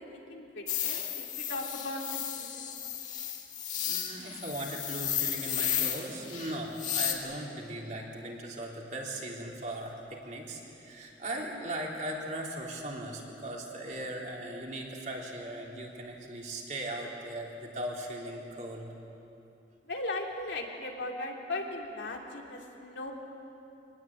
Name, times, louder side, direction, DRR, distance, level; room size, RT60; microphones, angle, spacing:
voice 1, 0.1-2.7 19.9-23.1, left 2 dB, 85° left, 0 dB, 3.2 m, -38 dB
sound 1, 0.7-7.1, left 10 dB, 45° left, 2.4 m, -33 dB
voice 2, 3.8-18.9, right 1 dB, 45° right, -2 dB, 3.8 m, -38 dB
25.0 x 20.0 x 9.0 m, 2.9 s
head